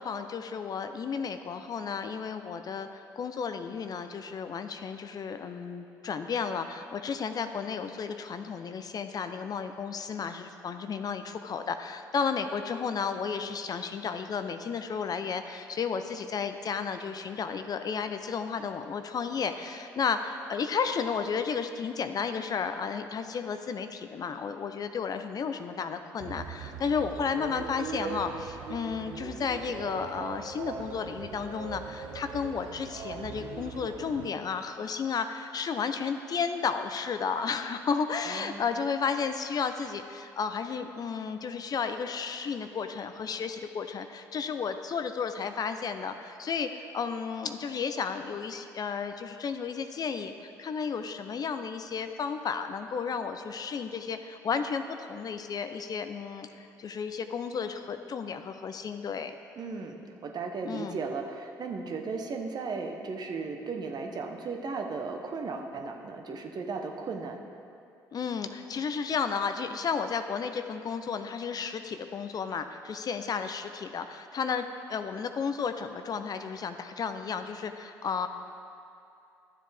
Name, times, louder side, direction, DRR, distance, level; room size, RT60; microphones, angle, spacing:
voice 1, 0.0-59.3 60.6-61.0 68.1-78.3, left 6 dB, 45° left, 8 dB, 0.6 m, -33 dB
sound 1, 26.2-34.3, right 5 dB, 70° right, 0.6 m, -40 dB
voice 2, 38.3-38.6 59.6-67.4, right 4 dB, 50° right, 3 dB, 1.0 m, -36 dB
12.5 x 7.5 x 3.4 m, 2.6 s
hypercardioid pair, 55°, 9 cm